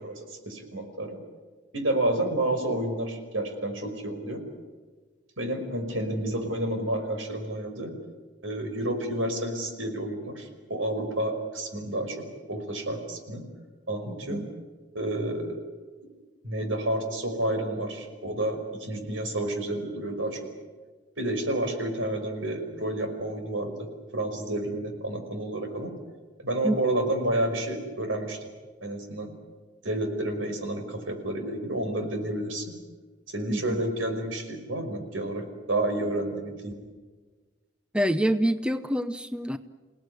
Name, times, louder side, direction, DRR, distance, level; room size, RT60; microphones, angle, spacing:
voice 1, 0.0-1.2 1.7-4.4 5.4-7.9 8.4-12.2 12.5-13.4 13.9-14.4 14.9-15.6 16.4-20.4 21.2-23.7 24.1-25.9 26.4-28.4 28.8-29.3 29.8-32.7 33.3-36.7, right 1 dB, 85° right, 5 dB, 5.4 m, -30 dB
voice 2, 14.1-14.5 26.6-26.8 33.5-33.8 37.9-39.6, equal, 5° right, 11 dB, 0.7 m, -27 dB
28.5 x 18.0 x 9.6 m, 1.4 s
head